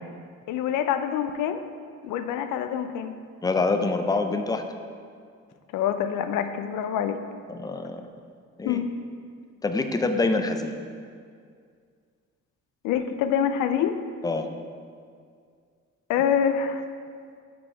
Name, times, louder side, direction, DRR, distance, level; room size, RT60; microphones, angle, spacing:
voice 1, 0.5-1.6 2.0-3.1 5.7-7.2 8.6-8.9 12.8-14.0 16.1-16.8, left 8 dB, 90° left, 9 dB, 0.5 m, -26 dB
voice 2, 3.4-4.6 7.5-8.0 8.6-8.8 9.6-10.7 14.2-14.5, left 3 dB, 15° left, 6 dB, 0.4 m, -25 dB
6.3 x 4.3 x 4.5 m, 2.2 s
cardioid pair, 90°, 30 cm